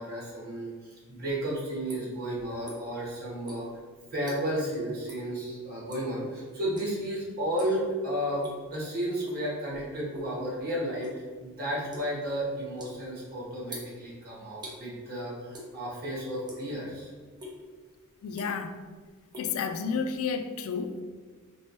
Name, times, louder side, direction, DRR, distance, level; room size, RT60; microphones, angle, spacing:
voice 1, 0.0-3.7 4.1-17.1, right 1 dB, 45° right, -6 dB, 1.5 m, -33 dB
sound 1, 1.2-3.1 3.4-4.7 5.0-5.3 5.6-6.2 6.7-7.1 7.4-7.8 8.2-8.8 9.2-10.4 10.7-14.8 15.5-16.1 16.3-17.0 17.4-17.6 18.1-18.8 19.1-20.2, left 1 dB, 20° right, 0.7 m, -44 dB
voice 2, 18.2-18.8 19.4-21.0, left 5 dB, 70° left, 7 dB, 0.3 m, -31 dB
4.2 x 3.0 x 3.0 m, 1.5 s
head